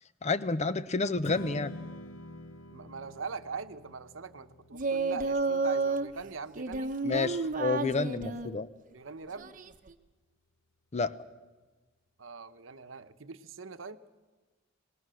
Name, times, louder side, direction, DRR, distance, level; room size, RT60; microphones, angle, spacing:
voice 1, 0.2-1.7 7.0-8.7 10.9-11.2, left 3 dB, 35° left, 14 dB, 0.7 m, -30 dB
Strum, 1.2-7.5, left 2 dB, 75° left, 0.9 m, -47 dB
voice 2, 2.7-6.9 8.9-9.5 12.2-14.0, right 5 dB, 80° right, 11 dB, 0.9 m, -42 dB
Singing, 4.7-6.1 6.6-8.5 9.4-9.9, right 3 dB, 45° right, 1.0 m, -31 dB
25.5 x 19.5 x 6.3 m, 1.3 s
head